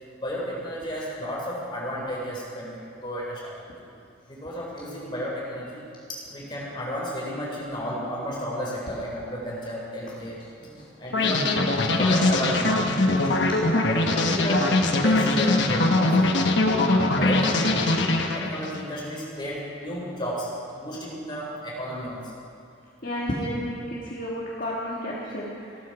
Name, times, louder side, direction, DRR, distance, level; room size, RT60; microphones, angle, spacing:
voice 1, 0.2-3.6 4.3-5.8 6.1-13.2 13.7-16.4 16.8-20.5 20.7-22.3 23.4-23.5, equal, 25° left, -5 dB, 4.2 m, -33 dB
sound 1, 11.1-18.8, left 2 dB, 65° left, 1.1 m, -22 dB
voice 2, 23.0-25.9, equal, 50° left, -6 dB, 1.6 m, -32 dB
16.0 x 13.0 x 4.9 m, 2.5 s
head